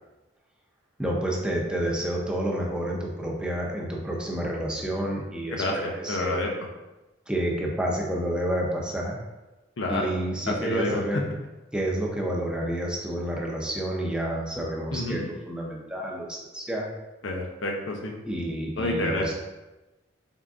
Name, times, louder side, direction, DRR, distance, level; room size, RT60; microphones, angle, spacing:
voice 1, 1.0-6.5 7.3-9.2 9.9-11.2 11.7-16.9 18.2-19.3, right 1 dB, 5° right, -2 dB, 0.5 m, -29 dB
voice 2, 5.6-6.5 9.8-10.1 10.5-11.0 14.9-15.2 17.2-18.1 18.8-19.3, left 1 dB, 70° left, 0 dB, 0.6 m, -28 dB
4.3 x 3.7 x 2.4 m, 1.1 s
head